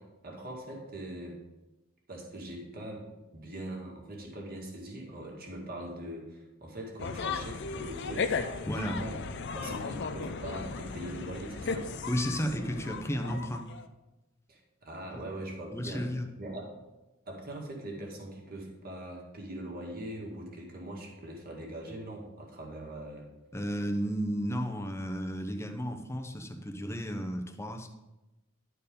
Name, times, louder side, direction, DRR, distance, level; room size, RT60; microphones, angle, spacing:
voice 1, 0.0-1.4 2.1-9.1 9.5-11.9 14.5-16.1 16.4-16.7 17.3-23.3, right 1 dB, 45° right, -1 dB, 2.0 m, -42 dB
sound 1, 7.0-13.9, left 4 dB, 55° left, 0.5 m, -36 dB
voice 2, 8.7-9.1 12.1-13.7 15.1-15.2 15.7-16.3 23.5-27.9, equal, 15° left, 4 dB, 0.7 m, -33 dB
11.0 x 4.6 x 5.1 m, 1.0 s
head